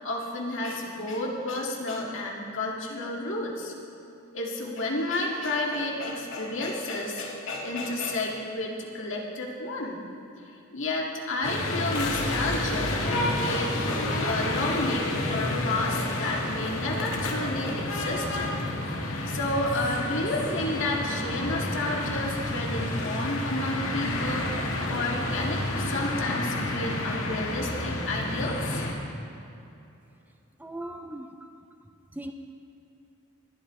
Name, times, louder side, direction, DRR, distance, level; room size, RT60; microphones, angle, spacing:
voice 1, 0.0-3.7 4.3-10.0 10.7-18.5 19.3-24.5 24.9-28.8, left 2 dB, 65° left, -2 dB, 2.0 m, -31 dB
sound 1, 11.4-28.9, left 1 dB, 85° left, 1.7 m, -30 dB
sound 2, 11.8-14.4, equal, 25° right, 2.4 m, -41 dB
voice 2, 30.6-31.5 32.1-32.3, right 1 dB, 10° right, 4 dB, 0.5 m, -38 dB
20.0 x 12.0 x 3.2 m, 2.7 s
head